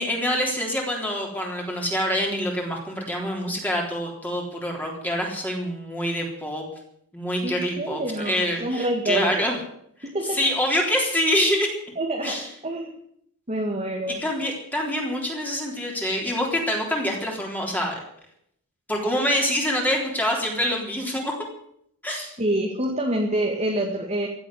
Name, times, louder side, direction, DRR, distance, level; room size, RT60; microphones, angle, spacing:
voice 1, 0.0-6.6 7.1-9.6 10.2-11.7 12.2-12.5 14.2-18.0 18.9-21.3 22.0-22.3, equal, 10° left, -1 dB, 3.6 m, -26 dB
voice 2, 7.4-9.6 10.0-10.4 12.0-12.9 13.5-14.2 22.4-24.3, right 1 dB, 30° right, 0 dB, 2.1 m, -27 dB
15.5 x 8.2 x 9.8 m, 0.70 s
head